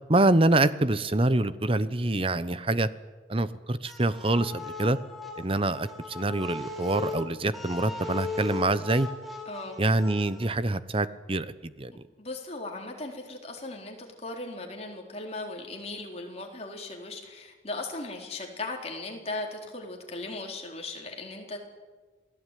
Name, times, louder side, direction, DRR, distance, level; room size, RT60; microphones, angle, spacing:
voice 1, 0.1-2.9 3.3-5.0 5.4-9.1 9.8-11.9, right 2 dB, 30° right, 14 dB, 0.9 m, -25 dB
sound 1, 3.9-10.6, left 4 dB, ahead, 4.3 m, -38 dB
voice 2, 9.5-9.8 12.2-21.6, left 2 dB, 35° left, 1 dB, 4.1 m, -38 dB
27.5 x 18.0 x 9.3 m, 1.3 s
head